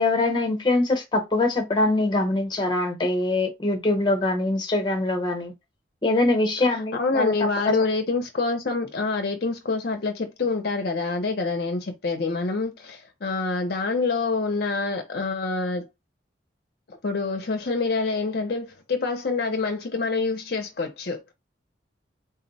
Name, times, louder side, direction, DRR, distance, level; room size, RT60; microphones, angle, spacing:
voice 1, 0.0-5.5 6.0-7.3, left 2 dB, 25° left, 0.8 m, -23 dB
voice 2, 6.7-15.9 16.9-21.2, left 3 dB, 55° left, 0.5 m, -26 dB
3.9 x 2.0 x 3.9 m
head